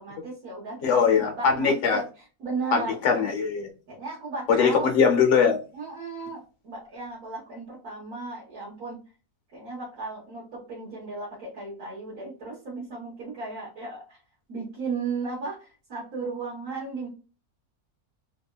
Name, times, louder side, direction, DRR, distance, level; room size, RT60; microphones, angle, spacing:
voice 1, 0.0-2.0 2.4-3.2 3.9-4.9 5.7-9.0 9.5-14.2 14.5-17.1, right 3 dB, 75° right, 1.6 m, -35 dB
voice 2, 0.8-2.0 2.7-3.7 4.5-5.6, left 6 dB, 60° left, 0.9 m, -21 dB
3.5 x 2.2 x 2.2 m
omnidirectional pair, 1.6 m